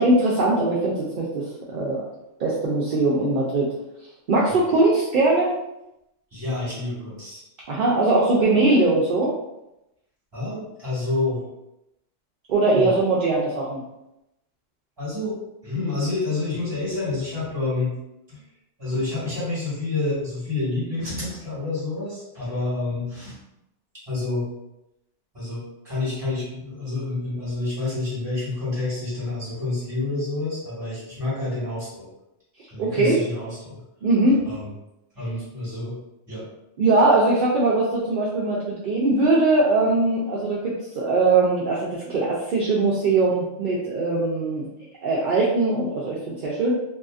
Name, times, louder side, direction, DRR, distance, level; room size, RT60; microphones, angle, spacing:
voice 1, 0.0-2.0 2.4-3.7 4.3-5.5 7.7-9.3 12.5-13.8 32.8-33.2 34.0-34.4 36.8-44.7 45.0-46.7, right 2 dB, 60° right, -6 dB, 0.6 m, -21 dB
voice 2, 6.3-7.4 10.3-11.4 12.7-13.0 15.0-15.4 15.6-17.9 18.3-18.4 18.8-23.3 24.1-24.5 25.3-32.1 32.7-33.8 34.4-34.7 35.1-36.0 36.3-36.5, left 2 dB, 20° right, -9 dB, 1.4 m, -28 dB
2.7 x 2.5 x 2.3 m, 0.88 s
omnidirectional pair, 1.2 m